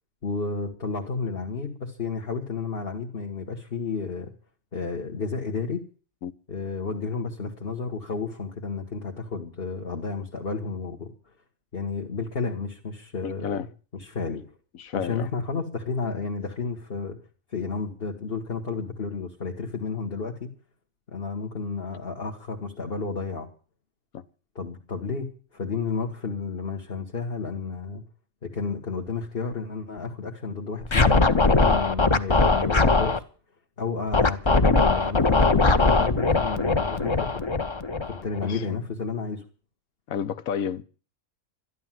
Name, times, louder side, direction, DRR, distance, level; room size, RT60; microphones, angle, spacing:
voice 1, 0.2-4.3 4.7-5.8 6.5-11.3 11.7-13.7 13.9-14.4 14.9-17.2 17.5-20.5 21.1-23.5 24.6-28.0 28.4-33.2 33.8-37.4 38.1-39.4, left 4 dB, 45° left, 1.9 m, -32 dB
voice 2, 13.2-13.7 14.8-15.3 24.1-24.2 38.4-38.8 40.1-40.8, left 8 dB, 85° left, 1.4 m, -31 dB
Scratching (performance technique), 30.9-33.2 34.1-38.4, left 3 dB, 25° left, 0.7 m, -20 dB
13.0 x 12.0 x 7.5 m
omnidirectional pair, 1.4 m